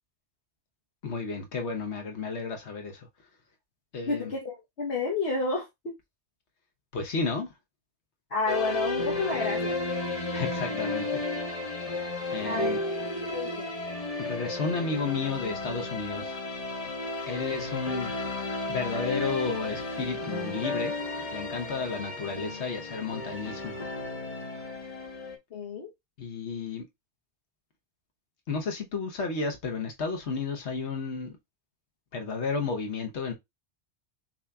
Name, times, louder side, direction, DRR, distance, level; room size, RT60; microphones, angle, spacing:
voice 1, 1.0-3.1 3.9-4.3 6.9-7.5 10.3-11.2 12.3-12.8 14.2-16.4 17.3-18.1 18.7-20.9 21.3-23.8 26.2-26.8 28.5-31.3 32.1-33.3, left 4 dB, 90° left, 1.3 m, -32 dB
voice 2, 4.0-5.9 8.3-9.8 12.4-13.1 13.3-13.7 25.5-25.9, left 3 dB, 70° left, 1.2 m, -31 dB
sound 1, 8.5-25.4, left 2 dB, 35° left, 1.0 m, -33 dB
6.0 x 2.9 x 2.3 m
omnidirectional pair, 1.1 m